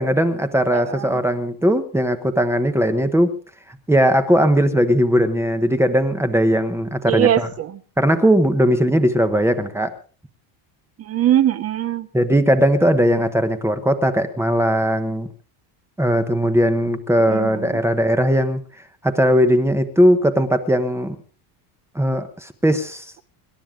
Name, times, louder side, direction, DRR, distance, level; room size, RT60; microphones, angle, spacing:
voice 1, 0.0-3.3 3.9-7.5 8.0-9.9 12.1-15.3 16.0-18.6 19.0-21.2 21.9-23.1, equal, 5° right, 8 dB, 1.0 m, -18 dB
voice 2, 0.7-1.2 7.1-7.8 11.0-12.1 17.3-17.8, right 11 dB, 30° right, 15 dB, 0.8 m, -21 dB
26.0 x 12.0 x 3.8 m, 0.38 s
cardioid pair, 175°, 48 cm